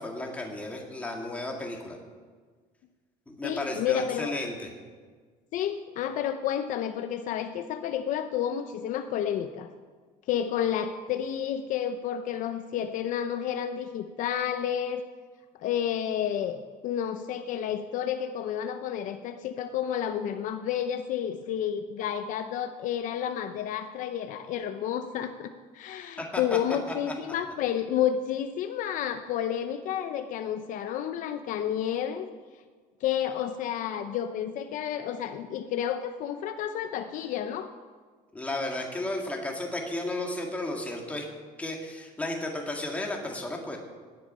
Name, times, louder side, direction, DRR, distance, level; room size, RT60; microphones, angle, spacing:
voice 1, 0.0-2.0 3.4-4.7 26.2-26.6 38.3-41.3 41.6-43.8, left 1 dB, 10° left, 0 dB, 1.9 m, -33 dB
voice 2, 3.4-4.4 5.5-9.7 10.3-15.0 15.6-32.3 33.0-37.7, left 9 dB, 55° left, 8 dB, 0.7 m, -30 dB
17.0 x 10.5 x 5.5 m, 1.5 s
cardioid pair, 175°, 16 cm